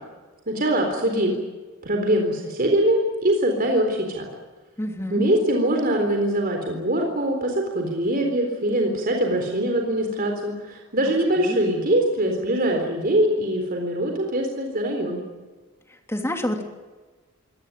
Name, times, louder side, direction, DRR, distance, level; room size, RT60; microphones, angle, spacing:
voice 1, 0.5-1.3 1.8-4.3 5.1-15.2, right 1 dB, 45° right, 3 dB, 3.9 m, -23 dB
voice 2, 4.8-5.2 11.4-11.6 16.1-16.6, left 1 dB, 15° left, 4 dB, 2.9 m, -28 dB
24.0 x 19.0 x 9.3 m, 1.3 s
head